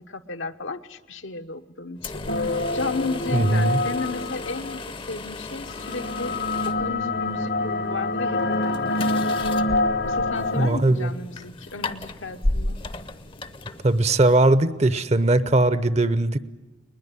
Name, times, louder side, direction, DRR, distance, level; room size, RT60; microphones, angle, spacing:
voice 1, 0.0-6.4 6.7-9.6 10.0-12.8, left 3 dB, 75° left, 7 dB, 1.1 m, -34 dB
sound 1, 2.0-14.5, left 2 dB, 25° left, 0.7 m, -35 dB
sound 2, 2.3-4.8 5.7-10.7, left 2 dB, 55° left, 1.0 m, -26 dB
voice 2, 3.3-3.8 10.6-11.1 13.8-16.4, right 2 dB, 35° right, 15 dB, 0.7 m, -19 dB
21.0 x 20.5 x 9.9 m, 1.1 s
head